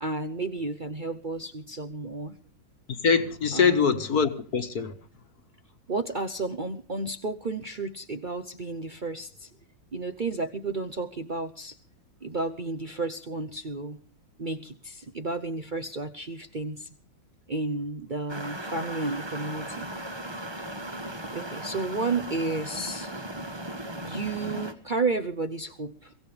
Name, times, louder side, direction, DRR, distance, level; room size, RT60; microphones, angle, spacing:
voice 1, 0.0-2.4 3.5-4.0 5.9-9.5 9.9-11.8 12.2-14.0 14.4-16.9 17.5-19.9 21.3-23.2 24.0-26.1, right 3 dB, 55° right, 0.5 m, -32 dB
voice 2, 2.9-4.9, left 6 dB, 50° left, 1.8 m, -23 dB
sound 1, 18.3-24.7, right 1 dB, 15° right, 1.1 m, -37 dB
23.5 x 16.5 x 3.3 m
omnidirectional pair, 2.2 m